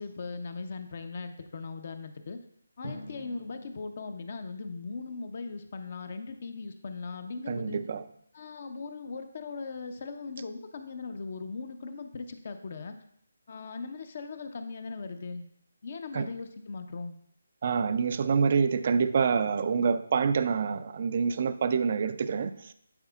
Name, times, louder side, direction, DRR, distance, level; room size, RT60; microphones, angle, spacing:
voice 1, 0.0-2.4 2.8-7.8 8.3-13.0 13.5-15.5 15.8-17.2, left 4 dB, 45° left, 0.6 m, -39 dB
Drum, 2.8-5.6, left 1 dB, 85° right, 1.3 m, -47 dB
voice 2, 7.5-8.0 16.1-16.3 17.6-22.6, right 5 dB, 40° right, 0.4 m, -26 dB
11.5 x 4.8 x 2.4 m
figure-of-eight pair, 150°, 0 cm